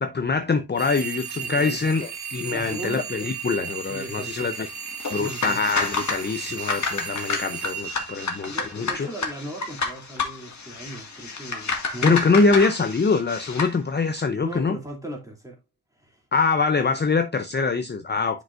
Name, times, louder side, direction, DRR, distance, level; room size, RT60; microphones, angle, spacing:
voice 1, 0.0-4.7 5.1-9.1 12.0-14.8 16.3-18.4, left 4 dB, 25° left, 0.6 m, -24 dB
sound 1, 0.8-8.9, right 7 dB, 75° right, 2.3 m, -35 dB
voice 2, 1.4-1.8 2.5-3.1 3.8-4.5 5.1-5.6 8.4-12.4 14.4-15.6 16.0-16.2, right 1 dB, 10° right, 2.7 m, -37 dB
sound 2, 5.0-13.8, left 4 dB, 45° left, 1.8 m, -30 dB
9.6 x 5.2 x 2.5 m
wide cardioid pair, 130°, 38 cm